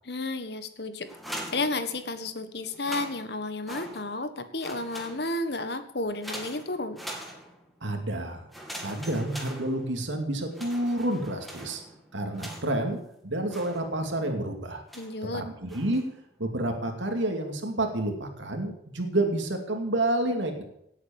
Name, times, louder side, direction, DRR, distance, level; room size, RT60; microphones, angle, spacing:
voice 1, 0.0-1.1 1.5-7.0 14.9-15.4, left 2 dB, 60° left, 9 dB, 1.5 m, -32 dB
sound 1, 1.1-2.3 2.7-4.3 4.6-5.6 6.2-7.8 8.5-10.1 10.5-12.9 13.5-14.2 14.9-15.3 15.7-16.2, equal, ahead, 2.6 m, -42 dB
voice 2, 7.8-8.4 8.8-11.8 12.1-13.0 13.2-14.8 15.3-16.0 16.4-20.6, right 1 dB, 85° right, 4 dB, 2.5 m, -29 dB
18.0 x 8.2 x 7.2 m, 0.77 s
head